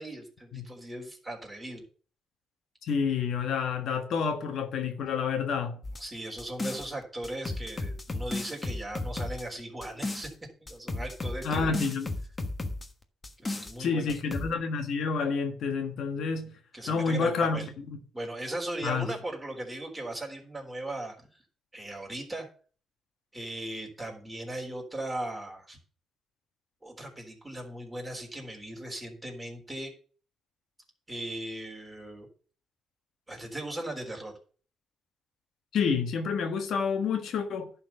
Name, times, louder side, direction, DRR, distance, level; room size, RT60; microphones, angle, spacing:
voice 1, 0.0-1.8 6.0-10.3 10.6-11.8 13.4-14.1 16.7-17.7 18.1-21.2 21.7-22.5 23.3-25.8 26.8-29.9 31.1-32.3 33.3-34.3, right 1 dB, 10° right, 3.8 m, -38 dB
voice 2, 2.8-5.8 11.4-12.1 13.8-16.5 16.9-17.7 18.8-19.1 35.7-37.7, left 5 dB, 70° left, 1.4 m, -29 dB
sound 1, 5.8-6.9 7.2-10.3 10.7-12.9 13.2-13.7 14.1-14.5, left 2 dB, 25° left, 1.4 m, -34 dB
11.0 x 4.4 x 6.8 m
cardioid pair, 90°, 0 cm